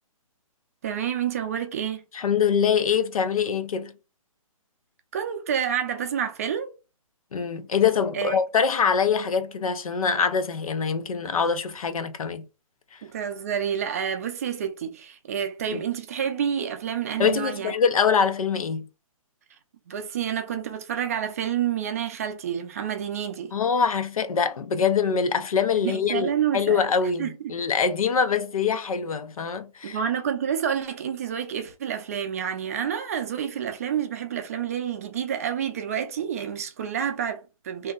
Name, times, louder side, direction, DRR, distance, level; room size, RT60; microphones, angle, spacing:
voice 1, 0.8-2.0 5.1-6.7 8.1-8.4 13.0-17.7 19.9-23.5 25.8-26.8 27.2-27.5 29.8-37.9, right 8 dB, 25° right, 0.4 m, -29 dB
voice 2, 2.1-3.9 7.3-12.5 15.7-15.8 17.2-18.9 23.5-30.0, left 6 dB, 75° left, 0.6 m, -24 dB
2.7 x 2.1 x 3.6 m
hypercardioid pair, 160°, 18 cm